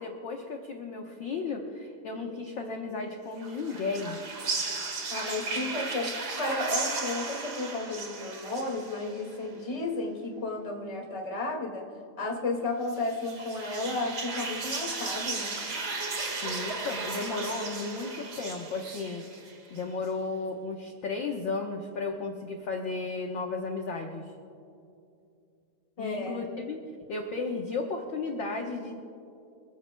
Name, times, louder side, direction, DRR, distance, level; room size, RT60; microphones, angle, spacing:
voice 1, 0.0-4.2 16.4-19.4 19.7-24.2 26.0-26.8 27.1-29.0, left 4 dB, 65° left, 1 dB, 1.2 m, -34 dB
sound 1, 3.4-9.4 12.8-19.8, right 3 dB, 40° right, 1.7 m, -35 dB
voice 2, 5.1-11.9 12.2-15.6 26.0-26.4, left 2 dB, 15° left, 0 dB, 1.3 m, -33 dB
24.5 x 14.5 x 2.2 m, 2.6 s
omnidirectional pair, 3.5 m